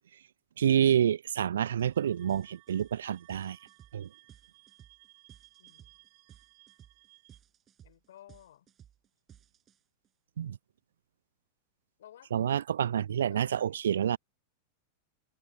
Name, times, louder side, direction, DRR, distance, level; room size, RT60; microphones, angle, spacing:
voice 1, 0.6-3.6 3.9-4.1 10.4-10.6 12.3-14.2, right 9 dB, 65° right, 0.6 m, -28 dB
sound 1, 1.8-2.0 2.3-10.1, right 10 dB, 25° right, 5.9 m, -57 dB
sound 2, 1.9-7.4, right 25 dB, 50° right, 6.4 m, -60 dB
voice 2, 5.6-5.9 7.8-8.7 12.0-12.4 13.3-14.2, left 11 dB, 60° left, 5.4 m, -56 dB
figure-of-eight pair, 90°, 0 cm